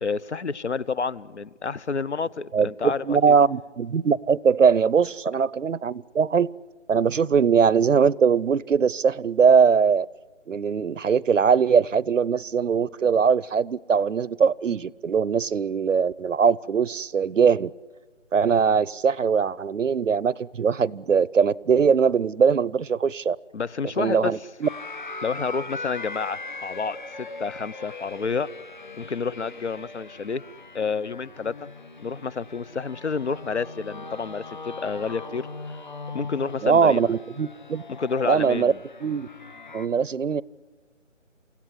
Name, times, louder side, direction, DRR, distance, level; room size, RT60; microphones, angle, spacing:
voice 1, 0.0-3.4 23.5-24.3 25.2-28.5 29.0-30.4 30.7-31.7 32.0-35.5 36.1-37.1 37.9-38.8, left 5 dB, 60° left, 19 dB, 0.8 m, -29 dB
voice 2, 2.5-6.5 6.9-10.1 10.5-17.7 18.3-23.4 24.0-24.7 36.6-37.8 38.2-38.7 39.0-39.3 39.7-40.4, right 6 dB, 75° right, 23 dB, 0.7 m, -21 dB
sound 1, 24.6-39.9, left 3 dB, 40° left, 1.5 m, -40 dB
28.5 x 16.0 x 9.8 m, 1.4 s
figure-of-eight pair, 170°, 38 cm